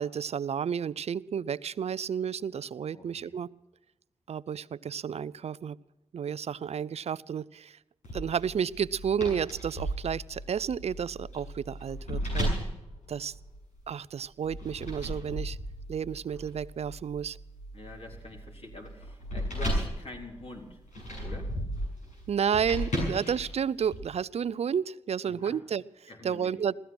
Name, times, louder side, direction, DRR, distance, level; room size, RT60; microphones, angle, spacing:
voice 1, 0.0-3.5 4.3-5.8 6.1-7.8 8.1-12.5 13.1-13.3 13.9-15.6 15.9-17.4 22.3-26.8, right 7 dB, 60° right, 19 dB, 0.5 m, -31 dB
voice 2, 2.9-3.3 17.7-20.8 21.2-21.5 25.3-25.6 26.1-26.6, left 2 dB, 55° left, 0 dB, 4.0 m, -45 dB
sound 1, 8.0-13.9 14.4-24.0, equal, 90° left, 7.0 m, -35 dB
16.0 x 14.0 x 6.1 m, 0.95 s
supercardioid pair, 45°, 12 cm